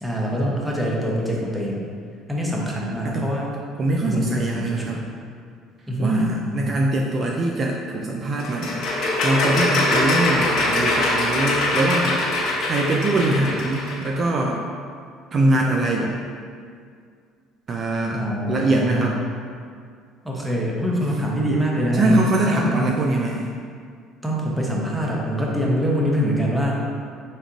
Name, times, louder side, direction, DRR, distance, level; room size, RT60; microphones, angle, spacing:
voice 1, 0.0-1.8 2.3-3.5 4.0-5.1 5.9-6.7 18.1-19.1 20.2-22.9 24.2-26.8, equal, 5° right, -3 dB, 0.8 m, -24 dB
voice 2, 3.8-5.0 6.0-12.2 12.7-14.6 15.3-16.2 17.7-18.2 18.5-19.2 21.9-23.5, right 2 dB, 45° right, 0 dB, 0.3 m, -22 dB
sound 1, 8.4-14.1, left 2 dB, 60° left, 0.8 m, -22 dB
4.0 x 3.6 x 2.5 m, 2.2 s
supercardioid pair, 75°, 0 cm